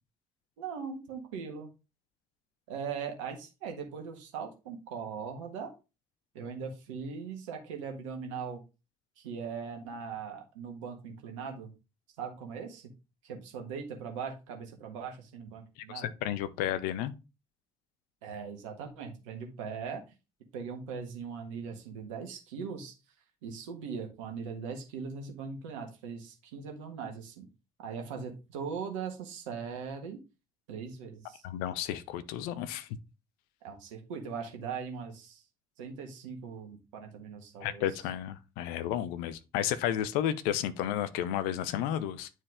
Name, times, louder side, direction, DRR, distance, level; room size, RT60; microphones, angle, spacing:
voice 1, 0.6-1.7 2.7-5.7 6.3-8.6 9.2-11.7 12.2-12.9 13.2-16.1 18.2-20.0 20.5-22.9 23.4-27.4 27.8-30.2 30.7-31.4 33.6-35.4 35.8-37.9, right 6 dB, 70° right, 1.5 m, -40 dB
voice 2, 15.9-17.1 31.4-32.9 37.6-42.3, left 11 dB, 65° left, 0.7 m, -32 dB
9.7 x 4.6 x 3.5 m
figure-of-eight pair, 45°, 16 cm